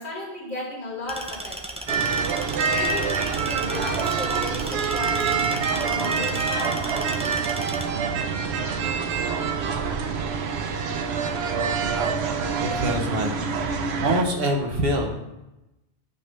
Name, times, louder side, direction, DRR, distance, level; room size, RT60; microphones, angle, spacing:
voice 1, 0.0-1.8 2.7-6.8, left 2 dB, 50° left, -4 dB, 2.2 m, -34 dB
sound 1, 1.1-7.8, right 1 dB, 10° right, 0.3 m, -37 dB
sound 2, 1.9-14.2, right 5 dB, 80° right, 0.9 m, -26 dB
voice 2, 11.8-12.2 12.6-13.3 14.0-15.1, right 1 dB, 65° right, 2 dB, 1.2 m, -25 dB
9.3 x 3.3 x 5.2 m, 0.96 s
omnidirectional pair, 1.1 m